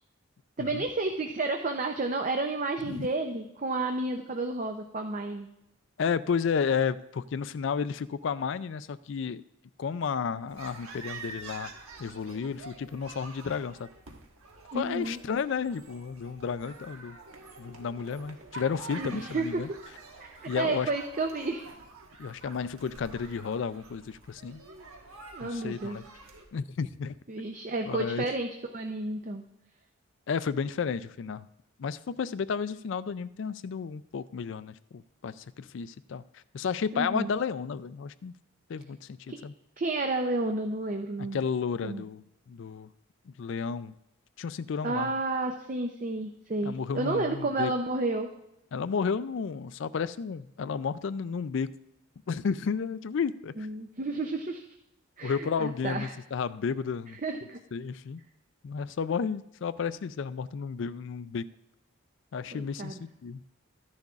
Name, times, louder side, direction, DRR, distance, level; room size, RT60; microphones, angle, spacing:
voice 1, 0.6-5.5 14.7-15.2 19.0-19.6 20.2-21.7 25.3-26.0 27.3-29.4 36.9-37.3 39.3-39.4 39.8-41.4 41.8-42.0 44.8-48.3 53.6-54.6 55.2-56.1 57.2-57.6 62.5-63.0, right 2 dB, 35° right, 4 dB, 0.5 m, -31 dB
voice 2, 6.0-9.4 9.8-11.7 12.0-13.9 14.7-17.2 17.6-19.7 20.5-20.9 22.2-24.6 25.4-26.0 26.5-27.1 27.9-28.3 30.3-31.5 31.8-36.2 36.5-38.3 38.7-39.5 41.2-42.2 42.5-42.9 43.4-43.9 44.4-45.1 46.6-47.7 48.7-51.7 52.3-53.5 55.2-57.2 57.7-58.2 58.6-61.5 62.3-63.4, left 6 dB, 60° left, 16 dB, 0.3 m, -32 dB
sound 1, 10.5-26.4, right 3 dB, 85° right, 1.4 m, -47 dB
14.0 x 10.5 x 2.4 m, 0.86 s
head